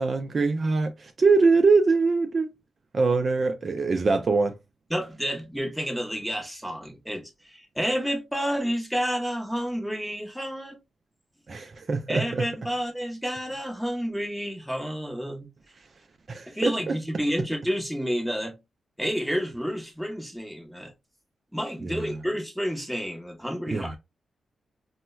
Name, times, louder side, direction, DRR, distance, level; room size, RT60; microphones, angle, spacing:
voice 1, 0.0-2.5 2.9-4.5 11.5-12.5 16.3-17.2 21.8-22.2 23.7-24.0, right 4 dB, 40° right, 0.3 m, -23 dB
voice 2, 4.9-10.8 12.1-15.5 16.5-18.5 19.0-20.9 21.5-23.9, equal, ahead, 0.7 m, -30 dB
4.2 x 2.1 x 2.2 m
wide cardioid pair, 115°, 0 cm